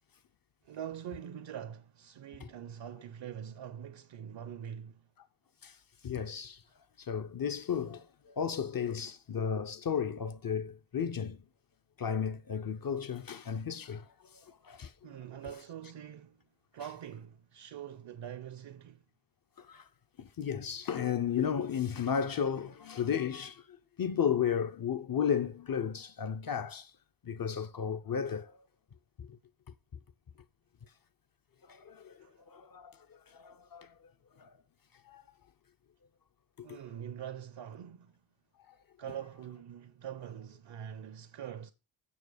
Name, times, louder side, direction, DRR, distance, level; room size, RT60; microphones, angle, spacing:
voice 1, 0.6-5.1 15.0-16.4 16.7-19.0 32.2-32.3 36.6-38.2 39.0-41.7, right 9 dB, 65° right, 0.6 m, -44 dB
voice 2, 6.0-6.6 7.0-11.4 12.0-14.1 14.3-14.9 19.6-19.8 20.2-23.6 24.0-26.9 27.2-28.5 29.2-29.3 31.7-32.2 32.5-33.9 34.4-34.5 35.1-35.2 36.6-36.7, left 7 dB, 45° left, 0.5 m, -34 dB
7.1 x 6.2 x 4.9 m
wide cardioid pair, 120°, 48 cm